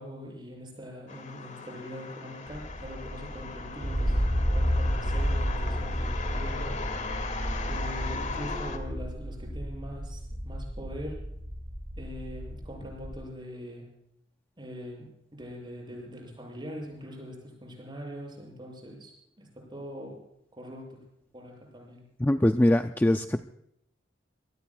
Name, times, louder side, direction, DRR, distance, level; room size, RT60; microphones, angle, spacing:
voice 1, 0.0-4.2 4.5-6.8 7.6-11.3 12.0-13.9 14.6-20.3 20.5-21.0 21.3-22.0, equal, 25° right, -1 dB, 7.8 m, -42 dB
sound 1, 1.1-8.8, left 4 dB, 40° left, 2.4 m, -38 dB
sound 2, 2.5-13.2, equal, 60° right, 6.6 m, -31 dB
voice 2, 22.2-23.4, left 1 dB, 10° left, 7 dB, 0.5 m, -22 dB
25.5 x 19.5 x 2.4 m, 0.77 s
head